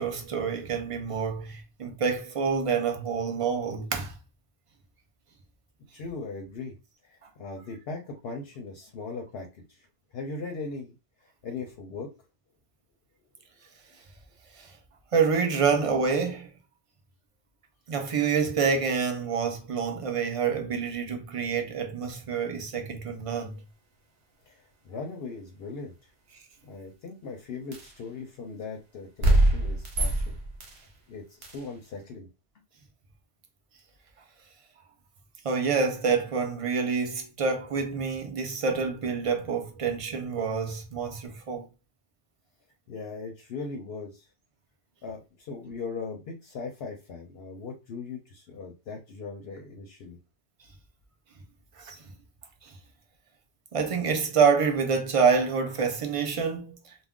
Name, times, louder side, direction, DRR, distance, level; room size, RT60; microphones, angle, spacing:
voice 1, 0.0-4.1 14.6-14.7 15.1-16.5 17.9-23.6 35.4-41.6 51.8-52.0 52.6-52.7 53.7-56.8, right 5 dB, 50° right, 0.4 m, -27 dB
voice 2, 5.9-6.7 7.0-9.9 10.1-10.9 11.2-12.1 24.5-26.1 26.6-30.4 30.8-32.3 42.9-44.2 45.0-50.2, left 4 dB, 70° left, 0.8 m, -39 dB
sound 1, 27.7-28.0 29.2-30.9 31.4-31.7, right 1 dB, 75° right, 1.1 m, -24 dB
2.4 x 2.1 x 3.5 m
omnidirectional pair, 1.2 m